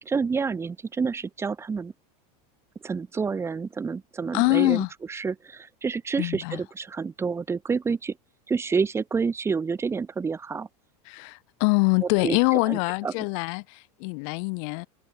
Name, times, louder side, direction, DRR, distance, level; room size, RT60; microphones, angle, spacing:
voice 1, 0.0-1.9 2.8-8.2 8.5-10.7 12.0-13.1, right 5 dB, 15° right, 0.7 m, -29 dB
voice 2, 4.3-4.9 6.2-6.6 11.1-14.9, left 39 dB, 60° left, 0.8 m, -24 dB
supercardioid pair, 125°, 20 cm